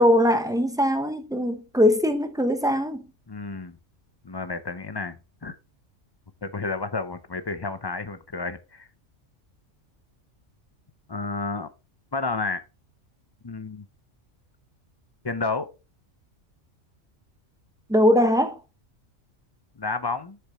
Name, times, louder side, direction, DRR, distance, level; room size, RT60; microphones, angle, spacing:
voice 1, 0.0-3.0 17.9-18.6, left 1 dB, 5° right, 0.8 m, -21 dB
voice 2, 3.3-3.8 4.2-5.6 6.4-8.9 11.1-11.7 12.1-12.6 13.4-13.8 15.2-15.7 19.8-20.4, left 3 dB, 30° left, 0.5 m, -31 dB
7.8 x 6.8 x 3.0 m
omnidirectional pair, 1.3 m